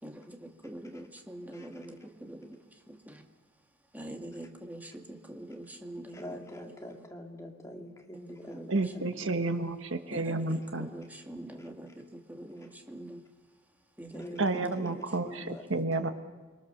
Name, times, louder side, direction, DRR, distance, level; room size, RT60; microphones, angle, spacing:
voice 1, 0.0-3.2 3.9-6.5 8.3-9.3 10.1-13.2 14.0-15.5, right 1 dB, 10° right, 1.9 m, -45 dB
voice 2, 6.1-9.0 14.1-16.1, left 1 dB, 15° left, 2.6 m, -45 dB
voice 3, 8.7-10.9 14.4-16.1, right 2 dB, 75° right, 1.6 m, -31 dB
29.0 x 22.5 x 6.8 m
head